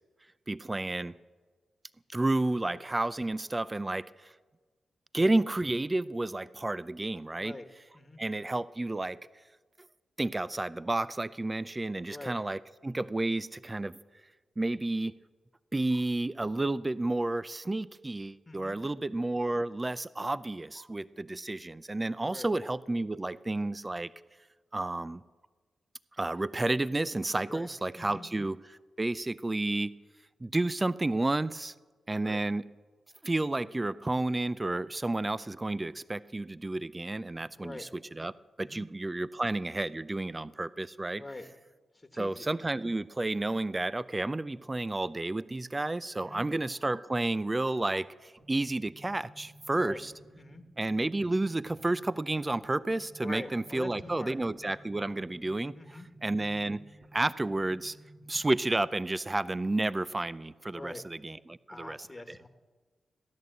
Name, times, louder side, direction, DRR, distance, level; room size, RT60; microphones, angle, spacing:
voice 1, 0.5-1.1 2.1-4.3 5.1-7.6 8.2-9.2 10.2-14.0 14.6-15.2 15.7-24.1 24.7-25.2 26.2-29.9 30.4-31.7 32.1-32.6 33.2-38.3 38.6-41.2 42.2-50.1 50.8-56.8 57.1-58.0 58.3-62.1, right 2 dB, 25° right, 17 dB, 0.5 m, -31 dB
voice 2, 18.5-18.8 22.3-22.5 27.5-27.7 28.0-28.3 32.2-32.4 37.6-37.9 38.6-38.9 41.2-41.5 41.9-42.5 46.2-46.5 49.8-50.0 50.4-50.6 53.2-54.4 55.8-56.1 60.7-61.1 61.7-62.5, left 2 dB, 25° left, 6 dB, 1.4 m, -43 dB
sound 1, 48.4-58.4, right 1 dB, 60° right, 2.4 m, -55 dB
16.0 x 11.0 x 8.0 m, 1.3 s
supercardioid pair, 50°, 0 cm